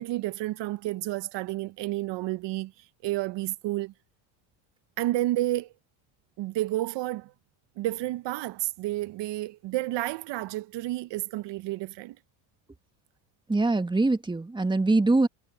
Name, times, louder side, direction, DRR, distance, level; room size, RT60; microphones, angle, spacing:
voice 1, 0.0-3.9 5.0-5.7 6.4-7.3 7.8-12.2, right 16 dB, 60° right, 1.0 m, -31 dB
voice 2, 13.5-15.3, right 2 dB, 10° right, 1.6 m, -23 dB
supercardioid pair, 90°, 50 cm